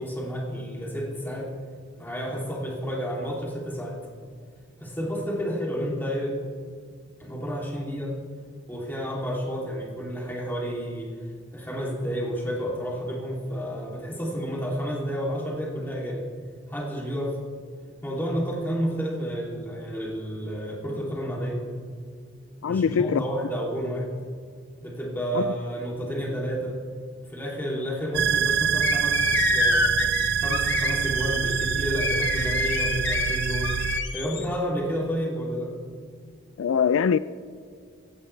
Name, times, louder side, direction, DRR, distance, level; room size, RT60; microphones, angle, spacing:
voice 1, 0.0-1.5 2.0-4.0 4.8-6.4 7.2-8.2 8.7-11.1 11.5-16.2 16.7-17.4 18.0-21.6 22.6-24.1 24.8-26.8 27.3-29.2 29.5-29.9 30.3-33.8 34.1-35.7, equal, 10° left, 3.0 m, -30 dB
voice 2, 22.6-23.3 25.3-25.5 36.6-37.2, left 6 dB, 85° left, 0.3 m, -22 dB
sound 1, 28.1-34.0, right 8 dB, 55° right, 0.4 m, -25 dB
sound 2, 28.8-34.4, left 5 dB, 65° left, 1.3 m, -28 dB
17.5 x 16.0 x 3.4 m
head